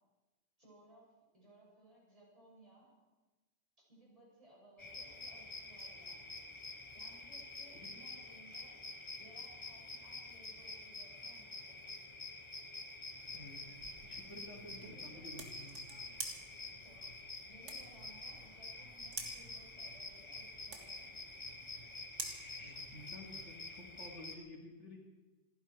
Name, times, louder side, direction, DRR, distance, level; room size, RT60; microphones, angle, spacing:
voice 1, 0.6-2.9 3.9-6.2 6.9-8.8 9.2-11.9 14.7-15.2 16.7-17.1 17.5-21.1, right 1 dB, 30° right, -5 dB, 6.9 m, -62 dB
sound 1, 4.8-24.4, left 2 dB, 25° left, 1.2 m, -48 dB
sound 2, 13.1-23.5, right 3 dB, 85° right, 2.2 m, -51 dB
voice 2, 13.3-13.6 14.0-15.9 22.6-25.0, left 1 dB, 75° left, -1 dB, 3.0 m, -52 dB
27.5 x 10.5 x 4.7 m, 1.2 s
omnidirectional pair, 1.2 m